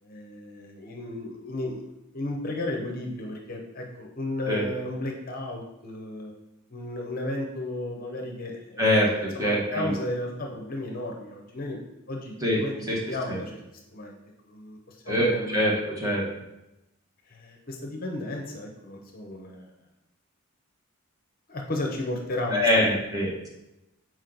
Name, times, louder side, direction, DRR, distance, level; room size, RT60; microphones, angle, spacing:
voice 1, 0.0-1.9 2.1-6.3 6.7-11.8 12.1-13.6 13.9-14.2 14.4-15.6 17.3-19.7 21.5-22.9, left 1 dB, 40° left, 1 dB, 0.8 m, -34 dB
voice 2, 8.8-9.9 12.4-12.6 12.9-13.0 13.3-13.4 15.1-16.2 22.5-23.5, equal, 15° right, -4 dB, 1.3 m, -24 dB
6.3 x 4.6 x 3.9 m, 0.94 s
head